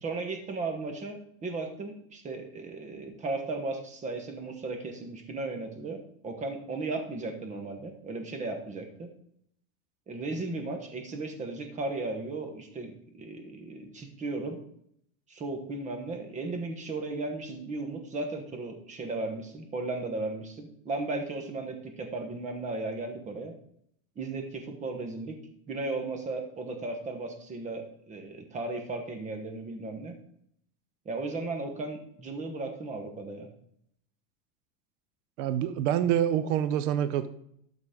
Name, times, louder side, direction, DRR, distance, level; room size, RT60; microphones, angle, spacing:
voice 1, 0.0-6.0 6.2-9.1 10.1-14.6 15.3-23.5 24.2-25.4 25.7-30.1 31.0-33.5, right 3 dB, 20° right, 5 dB, 1.2 m, -35 dB
voice 2, 35.4-37.3, right 10 dB, 60° right, 12 dB, 0.9 m, -26 dB
12.0 x 4.2 x 5.2 m, 0.69 s
supercardioid pair, 150°, 41 cm